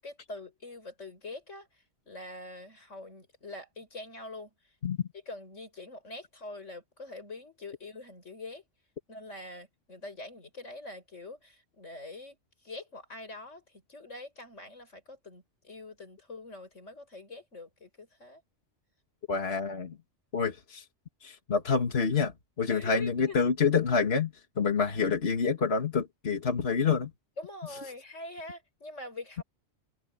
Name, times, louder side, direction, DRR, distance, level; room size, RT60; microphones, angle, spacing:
voice 1, 0.0-1.7 2.1-4.5 5.3-8.6 9.1-12.4 12.6-18.4 22.7-23.4 27.4-29.4, left 2 dB, 90° left, 6.0 m, -44 dB
voice 2, 19.3-20.0 20.3-20.8 21.2-27.1, left 5 dB, 60° left, 2.0 m, -27 dB
omnidirectional pair, 1.2 m